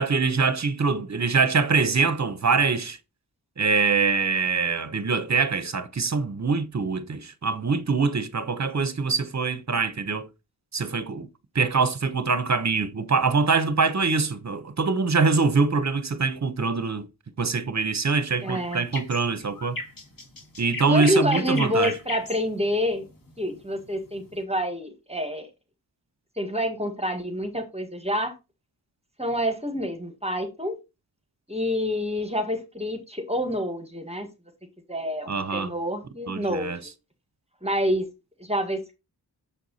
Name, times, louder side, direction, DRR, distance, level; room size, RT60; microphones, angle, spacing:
voice 1, 0.0-3.0 3.6-10.3 10.7-11.3 11.5-17.1 17.4-19.8 20.6-21.9 35.3-35.7 36.3-36.8, right 4 dB, 40° right, 0.9 m, -24 dB
sound 1, 18.3-24.4, left 3 dB, 50° left, 2.4 m, -37 dB
voice 2, 18.4-18.8 20.9-23.1 23.4-25.5 26.4-28.3 29.2-30.8 31.5-34.3 34.9-36.7 37.6-38.0 38.4-38.8, equal, 15° right, 1.6 m, -27 dB
7.0 x 4.6 x 4.1 m
wide cardioid pair, 65°, 42 cm